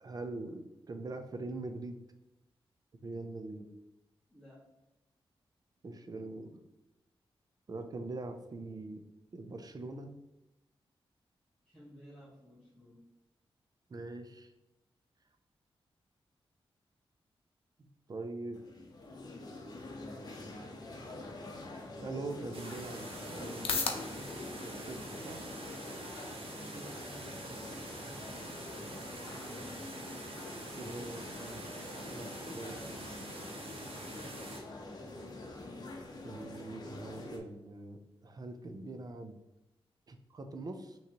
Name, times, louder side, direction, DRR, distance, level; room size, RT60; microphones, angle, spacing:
voice 1, 0.0-2.0 3.0-3.7 5.8-6.6 7.7-9.0 9.3-10.1 13.9-14.5 18.1-18.6 22.0-24.0 24.6-25.5 30.8-31.6 32.1-33.0 36.2-39.4 40.1-41.0, right 2 dB, 40° right, 7 dB, 0.5 m, -43 dB
voice 2, 4.3-4.7 11.6-13.0 26.7-29.1 34.0-34.4, equal, 5° right, -11 dB, 1.4 m, -54 dB
sound 1, 18.5-37.4, left 2 dB, 45° left, 0.8 m, -46 dB
sound 2, 22.2-39.1, left 5 dB, 80° left, 0.6 m, -47 dB
sound 3, 22.5-34.6, right 2 dB, 75° right, 0.9 m, -46 dB
5.8 x 3.1 x 2.9 m, 0.99 s
wide cardioid pair, 115°, 10 cm